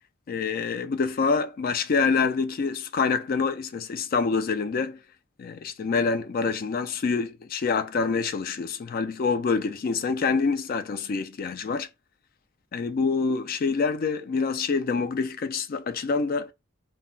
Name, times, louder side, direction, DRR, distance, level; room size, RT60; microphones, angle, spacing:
voice 1, 0.3-5.0 5.4-11.9 12.7-16.5, left 5 dB, 45° left, 0.3 m, -26 dB
2.1 x 2.0 x 3.7 m
head